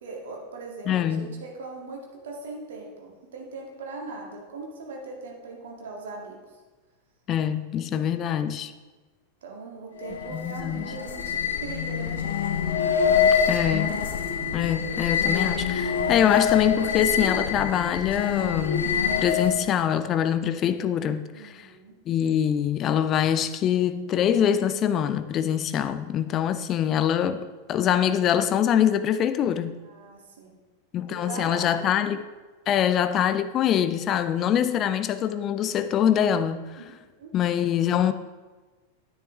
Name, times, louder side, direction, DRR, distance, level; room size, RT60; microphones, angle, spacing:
voice 1, 0.0-6.6 7.9-8.2 9.4-12.3 21.3-21.9 29.8-30.5 31.0-32.0 36.8-36.9 37.2-37.3, right 3 dB, 60° right, 1.9 m, -40 dB
voice 2, 0.9-1.3 7.3-8.7 10.3-10.9 13.5-14.0 14.5-21.7 22.1-29.8 30.9-32.3 32.7-36.7 37.3-38.1, left 9 dB, 30° left, 0.5 m, -24 dB
sound 1, 10.0-19.7, left 7 dB, 65° left, 1.0 m, -25 dB
9.9 x 9.9 x 3.1 m
figure-of-eight pair, 90°, 0 cm